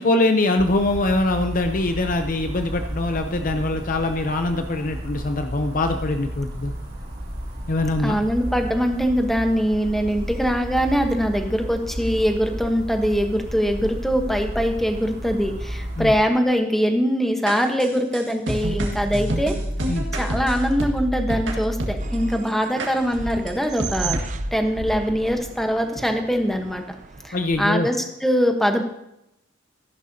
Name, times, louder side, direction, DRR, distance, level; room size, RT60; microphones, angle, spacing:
voice 1, 0.0-6.7 7.7-8.2 16.0-16.1 19.9-20.1 24.0-24.1 27.3-27.9, left 2 dB, 45° left, 6 dB, 0.6 m, -23 dB
sound 1, 0.6-16.2, equal, 60° right, 3.5 m, -33 dB
voice 2, 8.0-19.6 20.1-24.2 24.5-26.8 27.2-28.8, equal, ahead, 4 dB, 1.1 m, -22 dB
sound 2, 17.5-22.3 22.8-22.9 23.5-23.6 23.8-24.4, right 1 dB, 80° right, 1.8 m, -27 dB
sound 3, 22.0-27.6, right 5 dB, 40° right, 0.6 m, -36 dB
14.0 x 11.0 x 2.8 m, 0.83 s
head